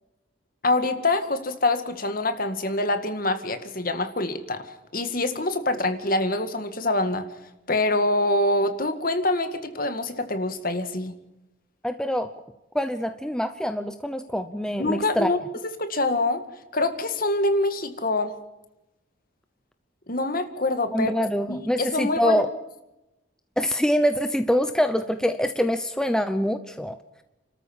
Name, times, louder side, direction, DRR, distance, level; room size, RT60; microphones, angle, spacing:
voice 1, 0.6-7.3 7.7-11.2 14.8-15.4 15.8-16.4 16.7-18.3 20.1-21.1 21.5-22.4, left 2 dB, 45° left, 8 dB, 1.9 m, -25 dB
voice 2, 11.8-12.3 12.7-15.3 20.9-22.5 23.6-27.0, equal, 5° left, 8 dB, 0.8 m, -24 dB
30.0 x 13.5 x 7.4 m, 0.94 s
head